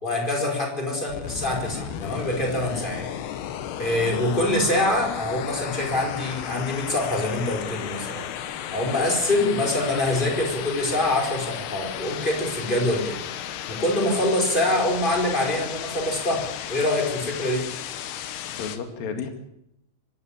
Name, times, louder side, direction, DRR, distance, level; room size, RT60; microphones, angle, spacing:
voice 1, 0.0-3.1 3.8-8.3 8.7-13.2 13.7-17.7, left 1 dB, 10° left, 1 dB, 4.7 m, -25 dB
sound 1, 1.1-18.8, left 10 dB, 70° left, 3.2 m, -34 dB
voice 2, 18.5-19.3, left 6 dB, 55° left, 6 dB, 3.7 m, -33 dB
25.0 x 13.0 x 8.8 m, 0.81 s
omnidirectional pair, 5.1 m